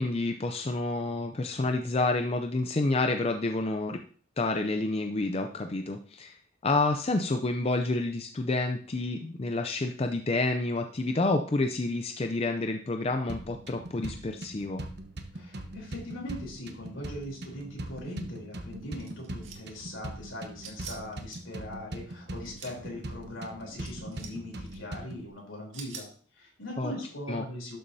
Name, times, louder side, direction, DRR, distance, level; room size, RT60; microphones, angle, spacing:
voice 1, 0.0-4.0 4.4-6.4 6.6-14.8 26.8-26.9 27.3-27.4, left 2 dB, 30° left, 5 dB, 0.5 m, -29 dB
sound 1, 13.3-25.3, right 1 dB, 55° right, 1.0 m, -41 dB
voice 2, 15.3-26.1 26.3-27.8, left 1 dB, 75° left, -1 dB, 3.6 m, -40 dB
sound 2, 19.0-19.7 20.6-21.4 22.3-22.7 23.8-24.3 24.7-24.8 25.7-26.1, right 6 dB, 75° right, 1.9 m, -44 dB
12.0 x 7.0 x 2.7 m, 0.43 s
head